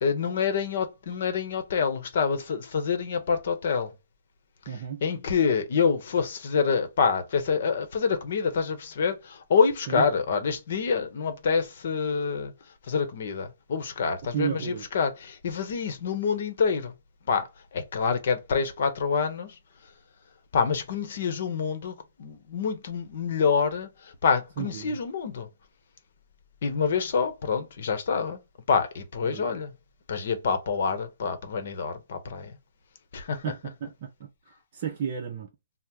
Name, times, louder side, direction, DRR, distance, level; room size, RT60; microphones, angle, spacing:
voice 1, 0.0-3.9 4.7-12.5 12.9-16.9 17.3-17.5 17.7-19.6 20.5-25.5 26.6-28.4 28.7-29.7 30.1-32.6 33.1-33.4, left 5 dB, 60° left, 0.8 m, -27 dB
voice 2, 4.7-5.0 9.9-10.0 14.2-14.8 24.6-25.0 29.2-29.6 33.4-34.3 34.7-35.5, right 8 dB, 45° right, 0.5 m, -33 dB
2.9 x 2.0 x 3.4 m
hypercardioid pair, 150°, 0 cm